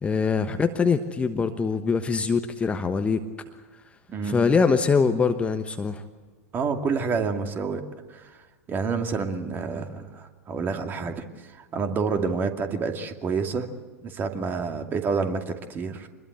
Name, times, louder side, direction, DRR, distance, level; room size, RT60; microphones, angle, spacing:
voice 1, 0.0-3.2 4.2-6.0, left 5 dB, 15° left, 8 dB, 1.2 m, -23 dB
voice 2, 4.1-4.4 6.5-7.8 8.1-8.4 8.7-13.7 14.0-16.1, right 5 dB, 25° right, 6 dB, 2.4 m, -28 dB
25.5 x 21.0 x 8.1 m, 1.4 s
figure-of-eight pair, 90°, 8 cm